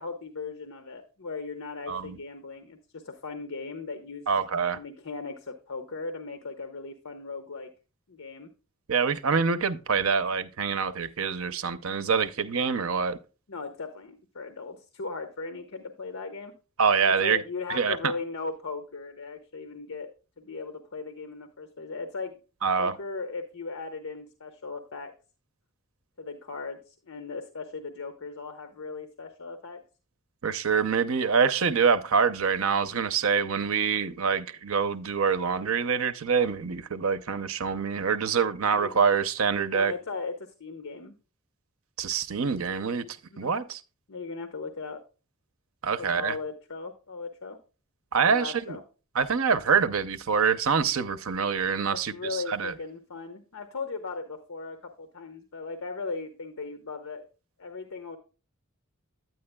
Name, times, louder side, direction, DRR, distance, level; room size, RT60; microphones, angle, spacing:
voice 1, 0.0-4.4 4.7-7.7 8.1-8.5 13.5-16.5 17.0-20.1 20.4-22.4 22.8-25.1 26.2-29.8 38.7-39.0 39.7-41.1 43.3-43.6 44.1-45.0 46.0-47.6 48.2-48.8 51.9-57.2 57.6-58.2, left 4 dB, 70° left, 0.9 m, -38 dB
voice 2, 4.3-4.8 8.9-13.2 16.8-17.4 17.7-18.1 22.6-22.9 30.4-39.9 42.0-43.1 43.4-43.8 45.8-46.3 48.1-48.8 49.1-52.7, right 6 dB, 70° right, 0.6 m, -25 dB
9.8 x 9.2 x 2.2 m
head